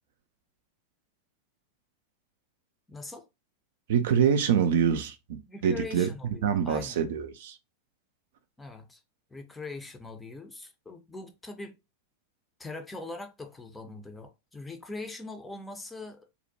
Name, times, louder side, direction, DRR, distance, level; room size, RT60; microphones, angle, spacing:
voice 1, 2.9-3.3 5.5-7.1 8.6-9.0 9.3-11.8 12.6-16.3, left 3 dB, 10° left, 0.5 m, -42 dB
voice 2, 3.9-6.1 6.4-7.6, right 8 dB, 55° right, 0.3 m, -25 dB
2.5 x 2.1 x 2.6 m
figure-of-eight pair, 90°, 0 cm